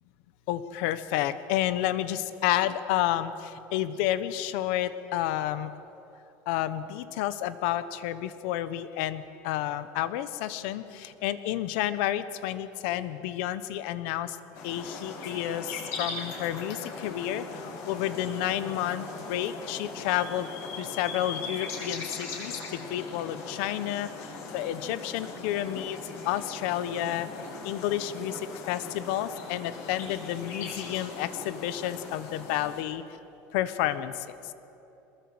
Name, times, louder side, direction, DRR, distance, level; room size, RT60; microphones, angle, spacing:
voice 1, 0.5-3.3 3.7-5.7 6.5-14.4 14.6-17.4 17.9-20.5 20.8-24.1 24.5-26.0 26.2-27.3 27.6-28.4 28.7-33.0 33.5-34.1, left 12 dB, 80° left, 13 dB, 1.2 m, -30 dB
sound 1, 14.5-32.8, left 4 dB, 60° left, 6.6 m, -40 dB
22.5 x 20.5 x 8.0 m, 3.0 s
cardioid pair, 160°, 6 cm